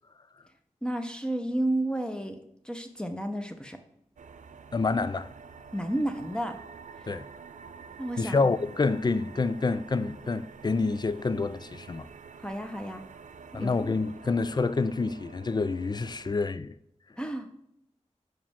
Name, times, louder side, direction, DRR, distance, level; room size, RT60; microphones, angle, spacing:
voice 1, 0.8-3.8 5.7-6.6 7.0-7.1 8.0-8.4 12.4-13.0 13.5-13.7 17.2-17.5, right 1 dB, 5° left, 0.8 m, -31 dB
sound 1, 4.2-16.3, right 6 dB, 85° right, 0.4 m, -48 dB
voice 2, 4.7-5.3 7.1-7.3 8.2-12.1 13.5-16.7, left 3 dB, 35° left, 0.4 m, -27 dB
6.0 x 4.8 x 3.6 m
wide cardioid pair, 50°, 13 cm